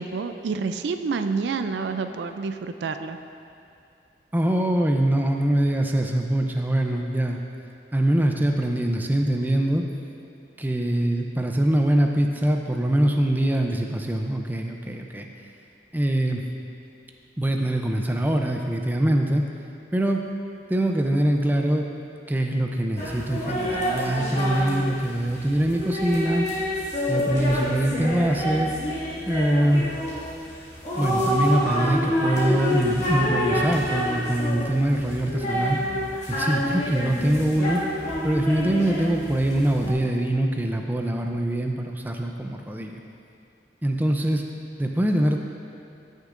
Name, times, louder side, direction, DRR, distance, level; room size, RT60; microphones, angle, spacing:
voice 1, 0.0-3.2, right 4 dB, 80° right, 8 dB, 0.4 m, -28 dB
voice 2, 4.3-7.4 7.9-9.8 10.6-15.3 15.9-16.4 17.4-19.4 19.9-20.2 20.7-21.9 22.3-26.5 27.1-28.7 29.3-29.9 31.0-35.8 36.3-37.8 38.2-43.0 43.8-44.4 44.8-45.4, right 1 dB, 10° right, 3 dB, 0.4 m, -23 dB
sound 1, 23.0-39.9, equal, 40° left, 2.0 m, -28 dB
15.0 x 6.5 x 2.5 m, 2.6 s
head